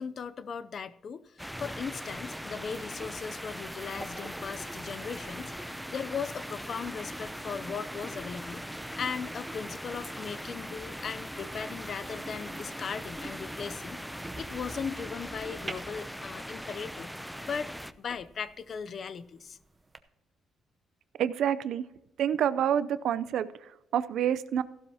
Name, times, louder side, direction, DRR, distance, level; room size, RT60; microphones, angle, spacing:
voice 1, 0.0-17.1 17.5-19.6, left 6 dB, 50° left, 0.6 m, -38 dB
sound 1, 1.4-17.9, equal, ahead, 0.5 m, -40 dB
sound 2, 1.6-20.0, right 2 dB, 20° right, 0.9 m, -48 dB
voice 2, 21.2-21.8 22.2-23.5 23.9-24.6, right 9 dB, 75° right, 0.6 m, -27 dB
15.0 x 12.0 x 2.9 m
cardioid pair, 90°, 0 cm